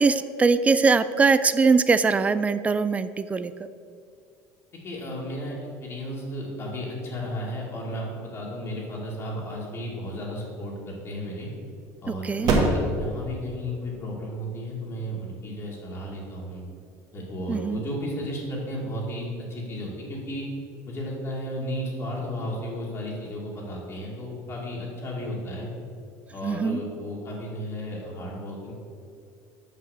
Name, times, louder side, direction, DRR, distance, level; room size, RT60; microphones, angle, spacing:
voice 1, 0.0-3.5 12.2-12.5 17.5-17.8 26.4-26.8, right 4 dB, 20° right, 13 dB, 0.3 m, -21 dB
voice 2, 4.8-11.5 12.0-16.6 17.1-20.5 20.8-25.7 26.3-28.7, equal, 35° left, -4 dB, 2.1 m, -34 dB
sound 1, 10.1-17.1, right 2 dB, 55° right, 1.5 m, -31 dB
5.8 x 5.8 x 6.4 m, 2.4 s
supercardioid pair, 115°, 7 cm